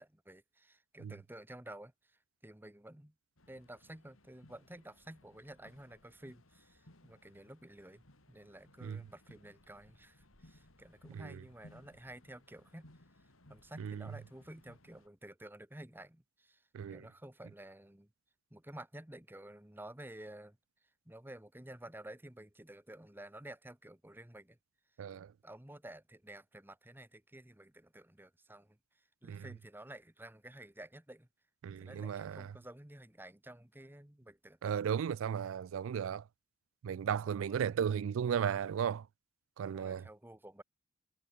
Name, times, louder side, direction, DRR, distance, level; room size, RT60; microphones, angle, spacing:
voice 1, 0.0-1.9 2.4-3.1 3.5-12.9 13.5-16.6 16.9-18.1 18.5-20.6 21.1-24.6 25.4-28.8 29.2-31.3 31.8-34.7 37.2-37.6 39.6-40.6, right 1 dB, 10° right, 1.2 m, -52 dB
sound 1, 3.4-15.1, left 1 dB, 80° left, 4.2 m, -63 dB
voice 2, 11.1-11.4 13.8-14.1 16.7-17.0 25.0-25.3 29.2-29.4 31.6-32.5 34.6-36.2 36.8-39.1 39.6-40.1, right 8 dB, 75° right, 0.3 m, -35 dB
head